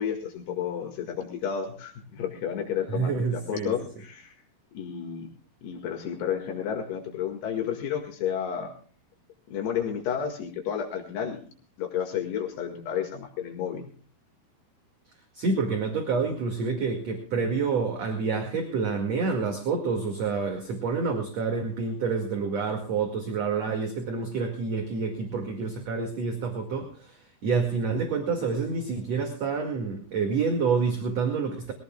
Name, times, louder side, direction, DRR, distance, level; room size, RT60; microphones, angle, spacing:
voice 1, 0.0-4.3 4.7-5.3 5.6-8.7 9.5-11.4 11.8-13.9, left 8 dB, 80° left, 3 dB, 4.0 m, -31 dB
voice 2, 2.9-3.7 15.3-31.7, right 4 dB, 45° right, 2 dB, 2.9 m, -28 dB
22.5 x 16.5 x 2.3 m, 0.41 s
omnidirectional pair, 4.7 m